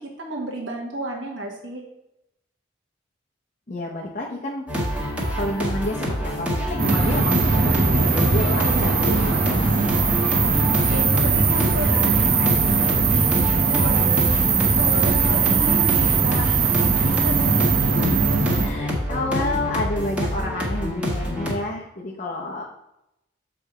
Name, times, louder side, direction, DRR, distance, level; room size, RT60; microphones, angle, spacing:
voice 1, 0.2-1.8 8.7-9.4 10.9-14.2 14.7-16.7 17.1-17.5 17.9-18.1, right 1 dB, 70° right, -2 dB, 1.3 m, -32 dB
voice 2, 3.7-4.7 5.3-9.4 9.9-10.1 17.5-17.6 18.6-22.7, left 2 dB, 40° left, -3 dB, 0.8 m, -29 dB
sound 1, 4.7-21.5, equal, 5° right, 1.3 m, -27 dB
sound 2, 6.8-18.7, right 4 dB, 50° right, 0.8 m, -20 dB
7.2 x 3.5 x 4.8 m, 0.84 s
head